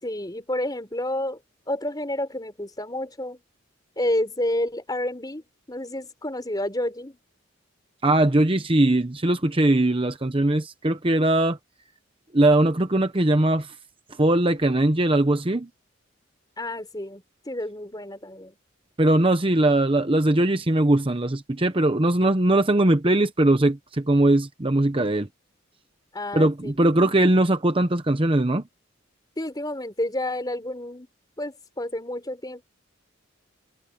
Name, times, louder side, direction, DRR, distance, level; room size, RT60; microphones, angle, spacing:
voice 1, 0.0-1.4 1.7-3.4 4.0-7.2 16.6-18.6 26.1-26.8 29.4-31.1 31.4-32.6, left 1 dB, 20° left, 4.4 m, -30 dB
voice 2, 8.0-11.6 12.3-13.7 14.2-15.7 19.0-25.3 26.3-28.6, right 1 dB, 25° right, 0.9 m, -20 dB
head